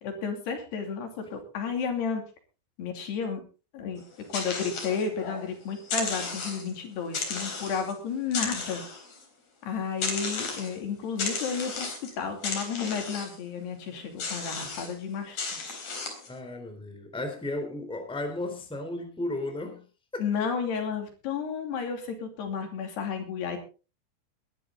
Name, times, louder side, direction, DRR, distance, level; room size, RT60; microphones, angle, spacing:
voice 1, 0.0-2.2 2.8-3.4 3.7-4.0 4.3-8.8 9.6-15.4 15.6-15.7 20.2-23.6, left 6 dB, 75° left, 4 dB, 4.9 m, -32 dB
sound 1, 4.0-5.5 5.8-6.8 7.1-7.9 8.3-9.2 10.0-10.8 11.2-12.1 12.4-13.4 14.2-14.9 15.4-16.3, left 4 dB, 45° left, 4.9 m, -34 dB
voice 2, 16.3-19.8 20.1-20.2, left 2 dB, ahead, 6 dB, 2.8 m, -34 dB
21.0 x 11.5 x 3.8 m, 0.35 s
omnidirectional pair, 4.8 m